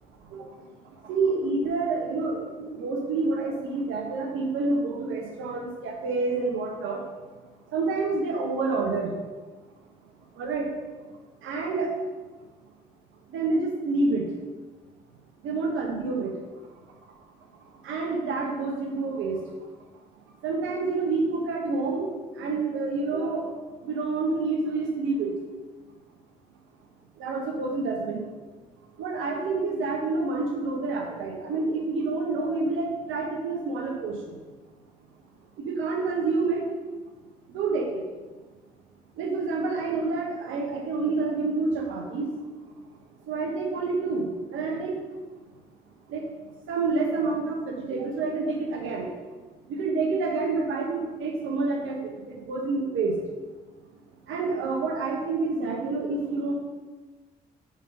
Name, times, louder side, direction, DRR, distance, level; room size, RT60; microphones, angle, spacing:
voice 1, 1.1-7.0 7.7-9.1 10.4-10.7 11.4-11.9 13.3-14.2 15.4-16.3 17.8-19.3 20.4-22.1 22.4-23.5 23.8-25.3 27.2-28.2 29.0-34.1 35.6-36.6 37.5-37.9 39.2-42.3 43.3-44.2 44.5-44.9 46.1-46.2 46.7-49.0 49.7-52.0 52.5-53.1 54.3-56.5, right 3 dB, 75° right, 2 dB, 1.1 m, -28 dB
5.4 x 4.2 x 5.3 m, 1.3 s
hypercardioid pair, 50°, 20 cm